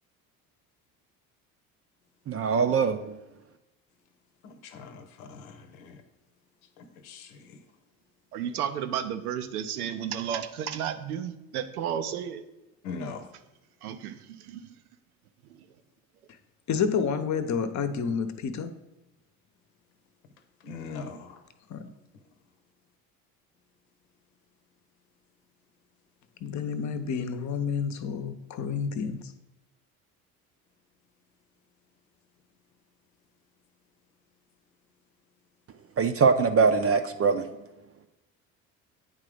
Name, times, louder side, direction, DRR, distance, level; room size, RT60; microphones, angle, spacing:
voice 1, 2.3-3.2 36.0-37.5, right 5 dB, 35° right, 8 dB, 0.6 m, -22 dB
voice 2, 4.4-6.0 6.8-7.6 12.8-13.3 20.6-21.4, left 4 dB, 80° left, 8 dB, 0.9 m, -41 dB
voice 3, 8.3-12.4 13.8-14.7 15.4-15.7, right 9 dB, 85° right, 10 dB, 0.7 m, -33 dB
voice 4, 16.7-18.7 21.7-21.8 26.4-29.2, left 6 dB, 40° left, 10 dB, 0.9 m, -29 dB
8.9 x 3.7 x 5.0 m, 0.99 s
hypercardioid pair, 60°, 43 cm